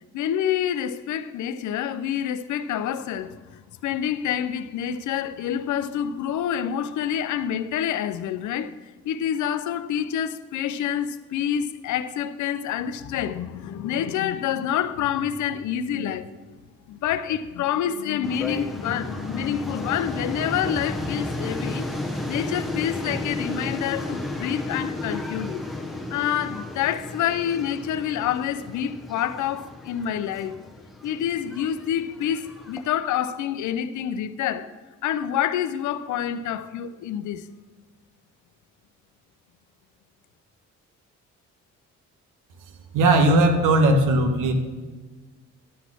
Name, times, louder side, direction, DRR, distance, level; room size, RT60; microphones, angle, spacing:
voice 1, 0.1-16.3 16.9-25.6 26.1-30.6 31.0-34.7 35.0-37.5, left 9 dB, 75° left, 0.6 m, -27 dB
sound 1, 18.2-32.9, left 2 dB, ahead, 1.1 m, -33 dB
voice 2, 42.9-44.5, right 2 dB, 85° right, 1.3 m, -18 dB
11.0 x 4.1 x 7.3 m
cardioid pair, 90°, 30 cm